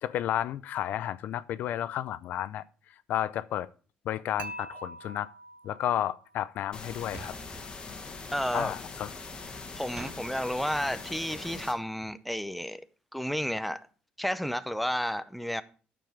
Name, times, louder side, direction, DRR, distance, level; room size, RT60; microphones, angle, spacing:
voice 1, 0.0-2.6 3.1-3.7 4.1-5.3 5.6-7.3 8.5-9.1, left 11 dB, 65° left, 0.4 m, -32 dB
Dishes pots and pans / Chink clink, 4.4-6.5, right 2 dB, 60° right, 1.0 m, -44 dB
sound 1, 6.7-11.7, left 4 dB, 30° left, 1.5 m, -42 dB
sound 2, 7.1-7.7 10.0-10.2, right 3 dB, 25° right, 1.3 m, -44 dB
voice 2, 8.3-8.7 9.7-12.8 13.1-13.8 14.2-15.6, equal, ahead, 0.6 m, -31 dB
9.3 x 6.9 x 4.9 m
cardioid pair, 115°, 3 cm